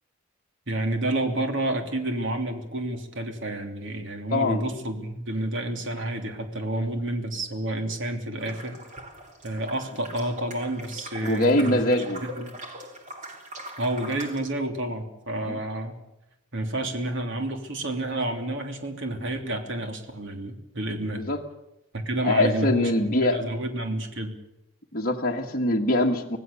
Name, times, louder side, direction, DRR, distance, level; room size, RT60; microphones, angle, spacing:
voice 1, 0.7-8.8 9.4-12.5 13.8-16.0 16.5-21.3 21.9-24.3, right 1 dB, 60° right, 4 dB, 3.2 m, -30 dB
voice 2, 4.3-4.6 11.2-12.2 15.5-15.6 21.3-21.4 22.2-23.4 24.9-26.4, left 1 dB, 40° left, -1 dB, 1.5 m, -23 dB
sound 1, 8.4-14.4, right 1 dB, 35° right, 3.5 m, -41 dB
26.0 x 18.5 x 7.0 m, 0.92 s
head